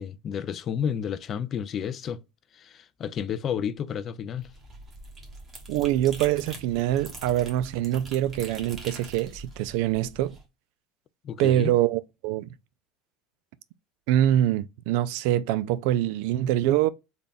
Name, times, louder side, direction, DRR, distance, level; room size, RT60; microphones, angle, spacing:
voice 1, 0.0-2.2 2.5-4.5 11.2-11.7, left 8 dB, 30° left, 0.3 m, -31 dB
sound 1, 4.3-10.4, right 2 dB, 20° right, 1.1 m, -43 dB
voice 2, 5.7-10.4 11.4-12.5 14.1-16.9, right 13 dB, 70° right, 0.3 m, -24 dB
3.5 x 2.3 x 3.8 m
cardioid pair, 150°, 0 cm